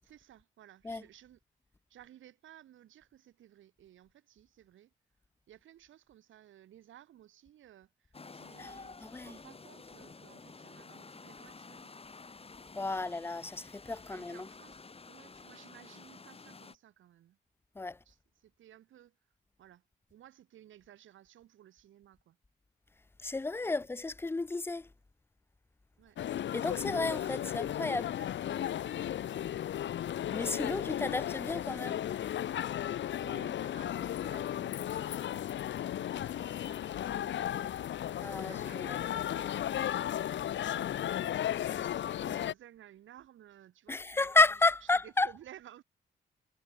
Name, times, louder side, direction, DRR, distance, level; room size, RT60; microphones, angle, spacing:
voice 1, 0.0-1.4 1.9-4.9 5.5-11.9 12.8-13.2 14.1-17.4 18.0-19.2 19.6-19.8 20.1-22.4 23.6-23.9 26.0-26.2 28.2-29.5 29.8-30.0 30.3-30.4 32.6-41.1 41.6-45.8, right 12 dB, 80° right, 5.7 m, -57 dB
sound 1, 8.1-16.7, left 4 dB, 30° left, 1.3 m, -51 dB
voice 2, 9.0-9.4 12.8-14.5 17.8-18.0 23.2-24.9 26.5-28.1 30.3-32.0 38.2-39.0 43.9-45.4, left 3 dB, 10° left, 0.4 m, -31 dB
sound 2, 26.2-42.5, left 11 dB, 70° left, 1.0 m, -35 dB
supercardioid pair, 50°, 20 cm